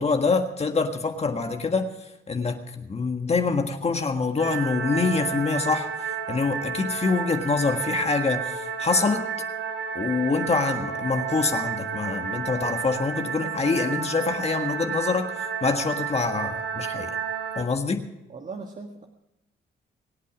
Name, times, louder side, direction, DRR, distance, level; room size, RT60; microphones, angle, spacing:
voice 1, 0.0-9.2 9.9-17.2 17.5-18.0, left 4 dB, 30° left, 5 dB, 1.7 m, -25 dB
sound 1, 4.4-17.6, right 7 dB, 75° right, 2.9 m, -31 dB
voice 2, 18.3-19.1, right 4 dB, 40° right, 3 dB, 1.7 m, -39 dB
23.5 x 8.3 x 6.2 m, 0.92 s
cardioid pair, 90°, 20 cm